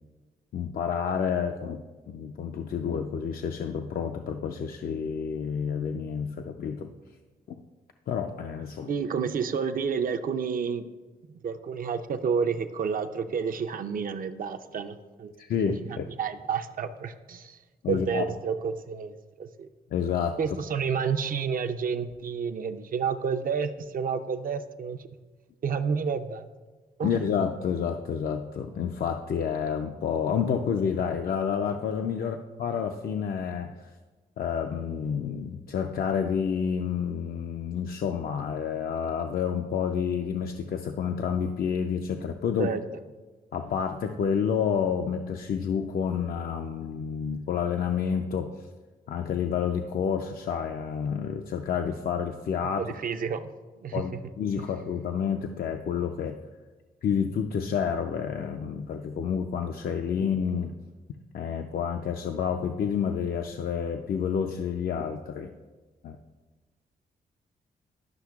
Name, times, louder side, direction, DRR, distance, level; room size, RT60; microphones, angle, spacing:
voice 1, 0.5-6.9 8.1-8.9 15.4-16.1 17.8-18.3 19.9-20.4 27.0-33.9 34.4-42.7 43.5-48.5 49.1-52.8 53.9-54.1 54.4-56.4 57.0-60.7 61.3-65.5 66.0-66.2, left 7 dB, 65° left, 4 dB, 0.5 m, -29 dB
voice 2, 8.9-10.9 11.4-15.3 15.9-17.6 17.9-19.7 20.4-25.0 25.6-26.5 27.0-27.2 32.2-32.4 42.6-42.8 52.8-53.5 53.8-54.2 54.6-54.7, right 6 dB, 60° right, 7 dB, 0.5 m, -30 dB
11.5 x 5.7 x 2.4 m, 1.3 s
cardioid pair, 65°, 17 cm